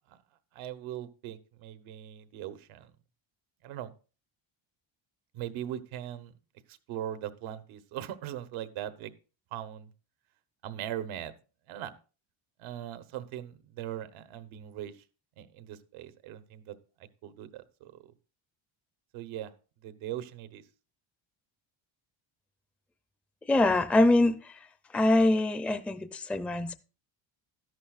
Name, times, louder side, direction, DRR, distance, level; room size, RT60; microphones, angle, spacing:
voice 1, 0.5-2.9 3.6-3.9 5.3-6.3 6.7-9.1 9.5-9.9 10.6-11.3 11.7-11.9 12.6-15.0 15.4-16.7 17.2-18.1 19.1-19.5 19.8-20.6, right 11 dB, 90° right, 1.1 m, -40 dB
voice 2, 23.5-24.4 24.9-26.8, left 2 dB, 5° left, 0.4 m, -24 dB
13.0 x 11.0 x 2.4 m
cardioid pair, 130°, 48 cm